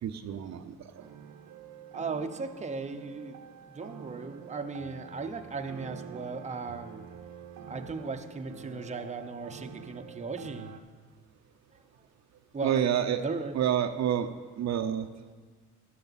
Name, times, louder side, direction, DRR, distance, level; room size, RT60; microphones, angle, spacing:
voice 1, 0.0-1.0 12.6-13.2 13.5-14.3 14.6-15.1, right 9 dB, 65° right, 7 dB, 0.7 m, -28 dB
sound 1, 1.0-10.8, right 7 dB, 90° right, 1.0 m, -47 dB
voice 2, 1.9-3.4 3.7-7.0 7.7-10.7 12.5-12.8 13.2-13.5, right 4 dB, 25° right, 6 dB, 0.8 m, -37 dB
13.5 x 9.4 x 4.1 m, 1.5 s
cardioid pair, 90°, 30 cm